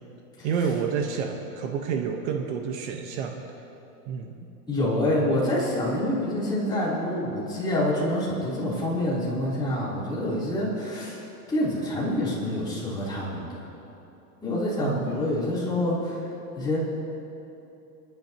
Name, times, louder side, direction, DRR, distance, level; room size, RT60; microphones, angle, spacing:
voice 1, 0.4-3.4 4.1-4.3 14.8-15.2, right 6 dB, 50° right, 3 dB, 1.3 m, -29 dB
voice 2, 4.7-11.2 11.5-13.7 14.4-16.3 16.6-16.8, left 1 dB, 10° left, -8 dB, 3.5 m, -27 dB
29.5 x 11.5 x 3.0 m, 2.9 s
supercardioid pair, 160°, 45 cm